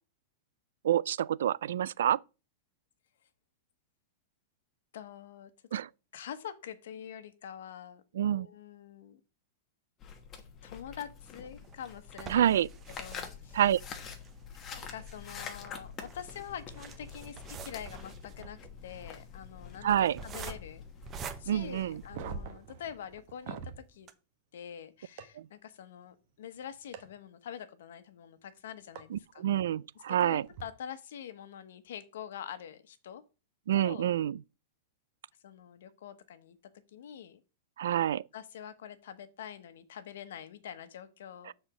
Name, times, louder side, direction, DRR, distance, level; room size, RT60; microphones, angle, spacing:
voice 1, 0.8-2.2 5.7-5.9 8.2-8.5 12.3-12.7 13.5-13.8 19.8-20.2 21.5-22.0 29.1-30.4 33.7-34.4 37.8-38.2 41.5-41.6, right 11 dB, 80° right, 0.3 m, -27 dB
voice 2, 4.9-5.5 6.1-9.2 10.6-12.7 13.0-13.6 14.7-18.6 18.8-20.8 21.4-24.1 24.5-29.4 30.1-33.2 33.7-34.1 35.4-36.6 36.9-37.4 38.3-41.5, left 9 dB, 75° left, 1.1 m, -45 dB
sound 1, 10.0-22.1, left 6 dB, 20° left, 1.1 m, -47 dB
sound 2, 11.2-22.6 23.1-23.2 23.5-23.6 24.0-24.1, right 5 dB, 20° right, 0.8 m, -48 dB
sound 3, 22.0-23.8 25.2-25.3 26.9-27.0 29.0-29.1 30.4-30.6, right 6 dB, 45° right, 1.0 m, -42 dB
6.9 x 4.3 x 6.1 m
supercardioid pair, 160°, 0 cm